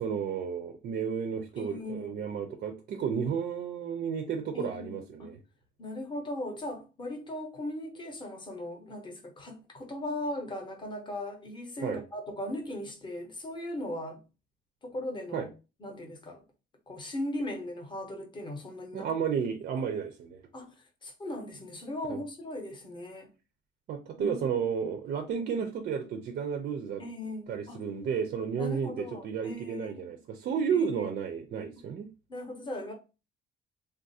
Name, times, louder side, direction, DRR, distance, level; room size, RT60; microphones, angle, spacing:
voice 1, 0.0-5.4 11.8-12.0 15.3-15.5 18.9-20.4 22.1-22.2 23.9-27.0 27.5-32.1, right 7 dB, 45° right, 0.4 m, -32 dB
voice 2, 1.6-2.3 4.5-5.3 5.8-14.2 14.8-15.5 15.8-16.4 16.9-19.1 19.7-19.8 20.5-23.3 24.2-24.6 27.0-27.8 28.5-30.1 30.7-31.1 32.3-32.9, left 1 dB, 20° left, 0.7 m, -38 dB
3.4 x 2.3 x 2.6 m
cardioid pair, 175°, 21 cm